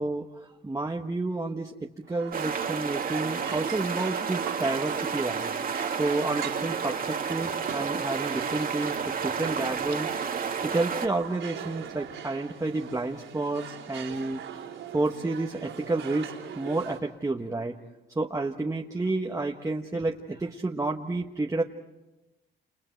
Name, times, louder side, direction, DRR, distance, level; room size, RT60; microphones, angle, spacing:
voice 1, 0.0-5.5 5.9-10.1 10.6-14.4 14.9-17.8 18.1-21.6, right 2 dB, 15° right, 0 dB, 1.3 m, -30 dB
sound 1, 2.0-17.0, right 8 dB, 85° right, 4.2 m, -41 dB
sound 2, 2.3-11.1, right 6 dB, 45° right, 1.9 m, -31 dB
29.5 x 29.0 x 4.6 m, 1.0 s
cardioid pair, 90°, 20 cm